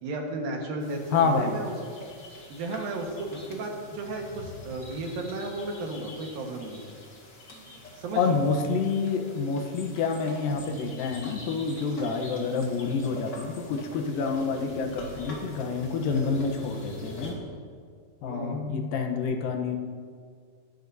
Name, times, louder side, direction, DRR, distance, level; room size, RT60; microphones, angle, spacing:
voice 1, 0.0-1.8 2.5-6.9 8.0-8.4 11.9-12.1 18.3-18.6, right 2 dB, 80° right, 1 dB, 3.3 m, -34 dB
sound 1, 0.8-17.3, left 1 dB, 35° left, 2.5 m, -44 dB
voice 2, 1.1-1.6 8.2-17.4 18.2-19.8, left 4 dB, 80° left, 4 dB, 2.7 m, -28 dB
21.5 x 12.0 x 2.8 m, 2.1 s
omnidirectional pair, 4.0 m